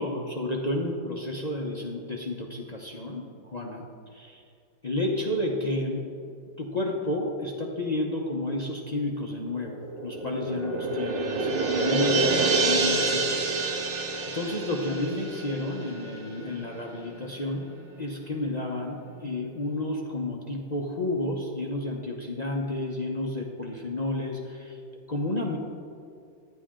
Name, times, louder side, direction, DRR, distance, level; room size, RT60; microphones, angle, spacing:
voice 1, 0.0-4.4 4.8-6.1 6.6-13.5 13.8-14.0 14.3-17.7 18.0-24.8 25.1-25.6, left 1 dB, 45° left, -1 dB, 0.5 m, -31 dB
sound 1, 9.6-16.5 16.9-17.0, right 3 dB, 70° right, 1.6 m, -27 dB
12.0 x 10.0 x 3.7 m, 2.4 s
omnidirectional pair, 2.1 m